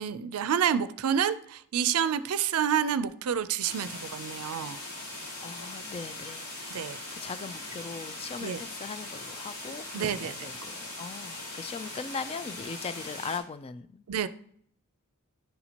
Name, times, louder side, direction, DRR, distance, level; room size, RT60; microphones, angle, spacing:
voice 1, 0.0-4.8 6.7-7.0 8.4-8.6 9.9-10.5 14.1-14.3, right 8 dB, 80° right, 14 dB, 0.4 m, -28 dB
sound 1, 3.6-13.4, left 2 dB, 90° left, 1.9 m, -40 dB
voice 2, 5.4-6.8 7.1-14.3, left 5 dB, 25° left, 12 dB, 0.3 m, -40 dB
10.5 x 4.2 x 2.9 m, 0.65 s
head